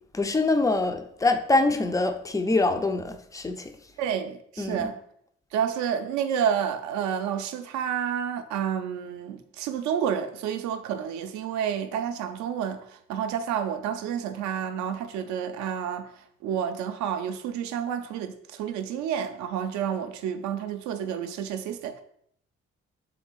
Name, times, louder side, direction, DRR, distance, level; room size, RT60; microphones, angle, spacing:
voice 1, 0.1-3.7 4.6-4.9, left 2 dB, 10° left, 0.3 m, -24 dB
voice 2, 4.0-5.0 5.5-16.1 16.4-22.0, right 8 dB, 55° right, 0.5 m, -30 dB
3.8 x 3.5 x 3.0 m
figure-of-eight pair, 45°, 34 cm